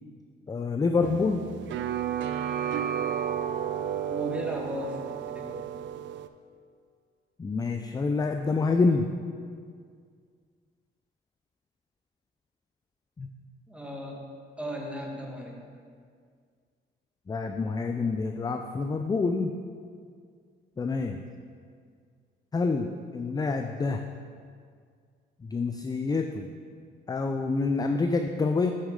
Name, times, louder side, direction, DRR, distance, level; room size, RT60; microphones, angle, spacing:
voice 1, 0.5-1.4 7.4-9.1 13.2-13.3 17.3-19.5 20.8-21.2 22.5-24.1 25.4-26.5 27.1-28.7, left 4 dB, 20° left, 5 dB, 0.4 m, -27 dB
sound 1, 1.0-6.3, right 9 dB, 70° right, 0.4 m, -32 dB
voice 2, 4.1-5.8 13.7-14.3 14.6-15.6, equal, 5° right, -1 dB, 1.3 m, -36 dB
8.3 x 6.4 x 3.7 m, 2.1 s
cardioid pair, 90°, 20 cm